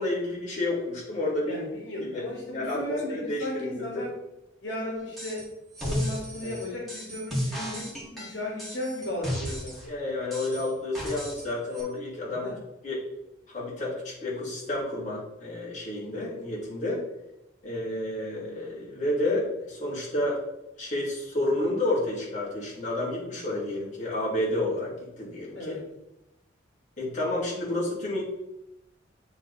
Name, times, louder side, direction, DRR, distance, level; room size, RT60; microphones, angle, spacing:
voice 1, 0.0-1.7 2.0-2.2 2.5-4.0 6.4-6.6 9.9-12.5 12.8-13.0 13.5-17.0 17.6-20.4 20.8-25.7 27.0-28.2, left 1 dB, 40° left, -5 dB, 2.6 m, -30 dB
voice 2, 1.5-4.2 4.6-5.5 5.8-9.8 12.4-12.6 25.5-25.9, left 1 dB, 75° left, -2 dB, 1.8 m, -35 dB
sound 1, 5.2-5.5 5.7-9.9 10.3-11.5 11.7-11.8, equal, ahead, 2.1 m, -34 dB
8.9 x 3.7 x 4.1 m, 0.91 s
head